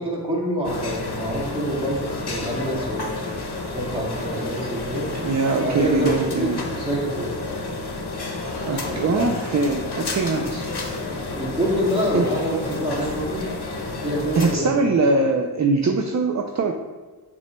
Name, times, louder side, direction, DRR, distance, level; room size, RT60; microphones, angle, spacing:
voice 1, 0.0-3.1 3.7-5.1 5.6-7.3 8.7-9.4 11.4-13.5 14.0-14.9, equal, 15° right, -5 dB, 1.8 m, -26 dB
sound 1, 0.6-14.6, left 3 dB, 80° left, 0.9 m, -30 dB
voice 2, 5.1-6.6 8.6-10.7 12.1-12.3 14.4-16.7, right 3 dB, 45° right, 3 dB, 0.5 m, -22 dB
7.9 x 5.4 x 2.2 m, 1.3 s
wide cardioid pair, 105°, 39 cm